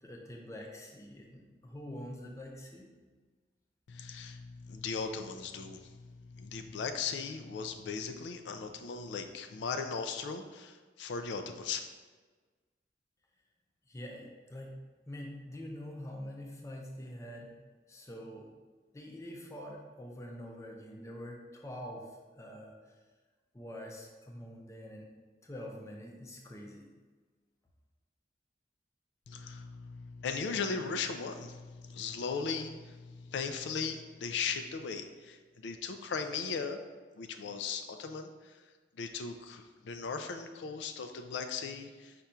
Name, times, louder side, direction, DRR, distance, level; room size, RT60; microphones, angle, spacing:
voice 1, 0.0-2.9 13.9-14.8 15.1-17.6 17.9-18.5 18.9-23.0 23.5-25.1 25.4-26.9, equal, 15° left, 0 dB, 0.5 m, -45 dB
voice 2, 3.9-11.8 29.3-36.8 37.2-38.6 39.0-42.1, left 5 dB, 80° left, 6 dB, 0.3 m, -38 dB
5.1 x 2.3 x 4.2 m, 1.4 s
head